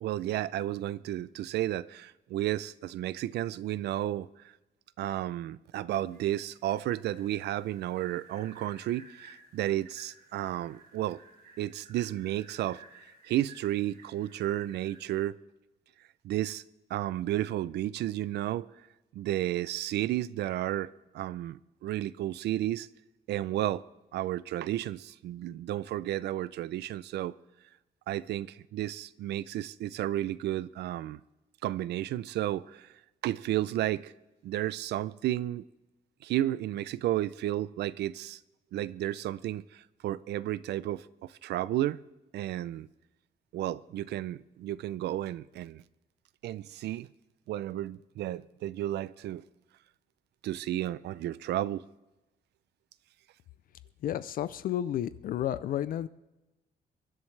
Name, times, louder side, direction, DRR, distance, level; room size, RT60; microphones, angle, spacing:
voice 1, 0.0-4.3 5.0-11.2 11.6-12.8 13.3-15.4 16.2-16.6 16.9-18.7 19.1-22.9 23.3-23.8 24.1-27.3 28.1-31.2 31.6-32.9 33.2-34.1 34.4-35.6 36.2-38.4 38.7-42.0 42.3-42.9 43.5-45.8 46.4-47.1 47.5-49.4 50.4-51.8, right 13 dB, 85° right, 0.5 m, -32 dB
sound 1, 6.1-15.0, right 4 dB, 70° right, 3.4 m, -56 dB
voice 2, 54.0-56.1, left 11 dB, 60° left, 0.4 m, -31 dB
23.5 x 11.0 x 3.3 m
cardioid pair, 180°, 17 cm